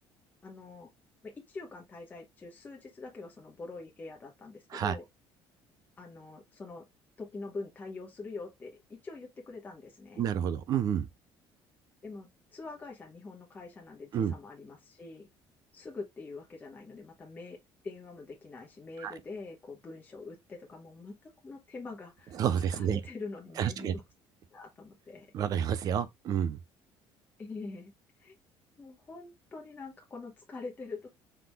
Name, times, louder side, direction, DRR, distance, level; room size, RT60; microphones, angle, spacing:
voice 1, 0.4-0.9 1.2-5.0 6.0-6.8 7.2-10.2 12.0-15.3 15.7-17.6 17.8-21.1 21.4-22.4 22.7-24.0 24.5-25.3 27.4-27.9 28.2-28.4 28.8-31.1, left 3 dB, 20° left, 1.1 m, -44 dB
voice 2, 10.2-11.1 14.1-14.3 19.0-19.1 22.4-23.0 23.6-23.9 25.3-26.6, right 9 dB, 45° right, 0.5 m, -29 dB
5.9 x 3.6 x 2.2 m
cardioid pair, 165°, 9 cm